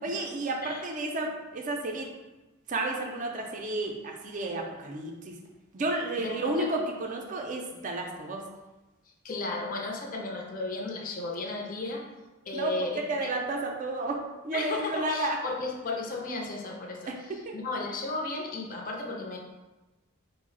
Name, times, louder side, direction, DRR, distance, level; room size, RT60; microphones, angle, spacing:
voice 1, 0.0-2.1 2.7-5.4 5.7-8.4 12.5-15.4 17.1-17.6, right 2 dB, 35° right, 1 dB, 0.4 m, -32 dB
voice 2, 6.2-6.7 9.2-12.0 12.5-13.3 14.5-19.4, left 2 dB, 40° left, 0 dB, 0.5 m, -34 dB
3.8 x 2.0 x 3.7 m, 1.1 s
head